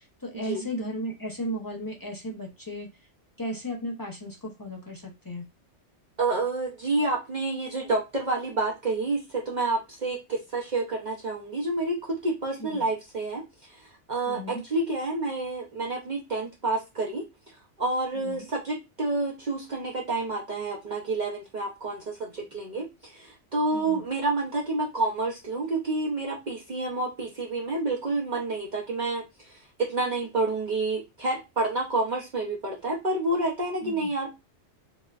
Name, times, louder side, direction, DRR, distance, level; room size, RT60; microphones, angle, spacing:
voice 1, 0.0-2.9 3.4-5.4 12.6-12.9 14.3-14.6 18.1-18.5 23.7-24.0 33.8-34.1, equal, 25° left, -1 dB, 0.4 m, -35 dB
voice 2, 6.2-13.4 13.7-17.2 17.8-29.6 29.9-34.3, right 2 dB, 45° right, -1 dB, 0.6 m, -29 dB
3.9 x 2.1 x 2.3 m, 0.24 s
omnidirectional pair, 1.3 m